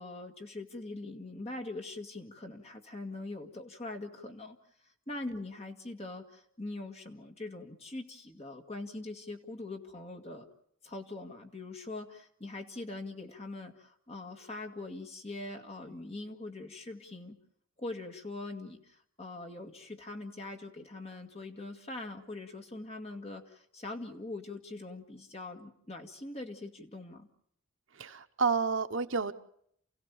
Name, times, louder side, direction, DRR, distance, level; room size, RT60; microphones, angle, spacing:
voice 1, 0.0-4.6 5.1-10.5 10.8-17.4 17.8-27.3, left 2 dB, 30° left, 4 dB, 1.9 m, -42 dB
voice 2, 28.0-29.3, right 5 dB, 65° right, 9 dB, 1.0 m, -30 dB
29.0 x 16.0 x 7.2 m, 0.70 s
head